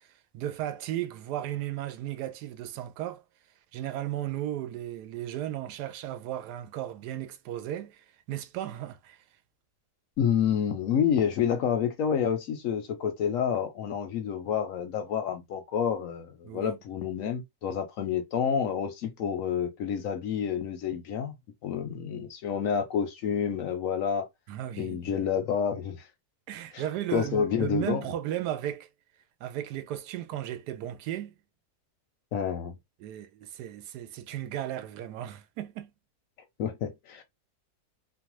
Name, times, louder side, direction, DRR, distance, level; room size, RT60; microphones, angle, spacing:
voice 1, 0.3-3.2 3.7-9.2 16.5-16.8 24.5-25.3 26.5-28.9 29.4-31.3 33.0-35.9, right 12 dB, 85° right, 1.2 m, -35 dB
voice 2, 10.2-21.3 21.6-24.3 24.8-26.0 26.7-26.8 27.1-28.0 32.3-32.8 36.6-37.2, left 8 dB, 70° left, 0.9 m, -29 dB
3.3 x 2.1 x 3.0 m
omnidirectional pair, 1.7 m